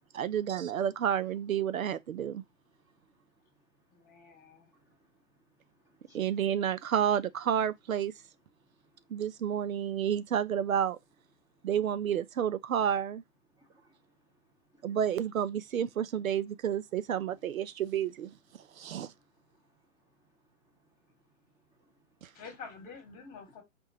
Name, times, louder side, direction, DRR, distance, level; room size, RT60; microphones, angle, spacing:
voice 1, 0.1-2.4 6.1-8.1 9.1-11.0 11.6-13.2 14.8-18.3 18.8-19.1 22.2-22.3, right 9 dB, 80° right, 0.6 m, -30 dB
voice 2, 2.2-6.4 8.5-9.4 9.6-9.8 11.4-11.7 13.5-15.0 17.3-17.8 18.6-22.4, right 1 dB, 10° right, 1.5 m, -69 dB
voice 3, 3.9-4.7 22.3-23.6, left 5 dB, 20° left, 1.7 m, -47 dB
5.3 x 2.8 x 2.9 m
hypercardioid pair, 130°, 40 cm